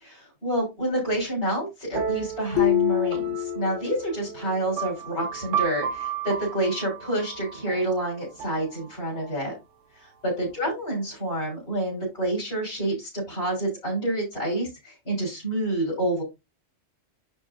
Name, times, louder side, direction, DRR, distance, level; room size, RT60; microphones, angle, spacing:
voice 1, 0.0-9.5 9.9-16.2, right 1 dB, 55° left, -5 dB, 5.0 m, -28 dB
sound 1, 1.9-9.5, right 8 dB, 80° right, 1.3 m, -34 dB
sound 2, 2.6-4.3, left 17 dB, 80° left, 0.9 m, -25 dB
10.5 x 5.1 x 2.8 m, 0.22 s
omnidirectional pair, 1.2 m